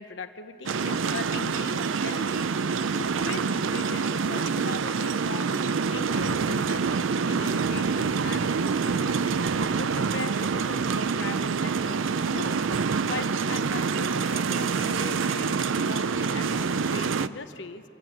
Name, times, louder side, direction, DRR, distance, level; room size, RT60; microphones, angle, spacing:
voice 1, 0.0-5.6 5.9-9.4 9.8-12.0 12.3-12.7 13.0-17.8, left 3 dB, 65° left, 9 dB, 0.9 m, -39 dB
sound 1, 0.7-17.3, right 5 dB, 75° right, 0.5 m, -26 dB
27.0 x 13.5 x 8.7 m, 2.7 s
head